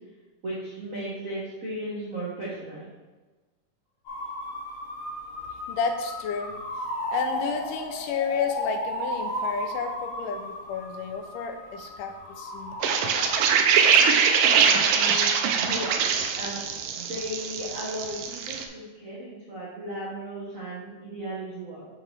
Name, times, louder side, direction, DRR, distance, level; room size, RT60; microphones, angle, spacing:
voice 1, 0.4-2.9 14.4-16.6 16.9-21.9, right 1 dB, 65° right, -7 dB, 0.7 m, -36 dB
sound 1, 4.1-15.9, left 1 dB, 55° left, 2.8 m, -35 dB
voice 2, 5.7-6.5 7.1-12.8, left 5 dB, 90° left, 6 dB, 2.3 m, -31 dB
sound 2, 12.8-18.6, right 6 dB, 80° right, 2.2 m, -22 dB
6.8 x 5.8 x 3.3 m, 1.2 s
omnidirectional pair, 3.8 m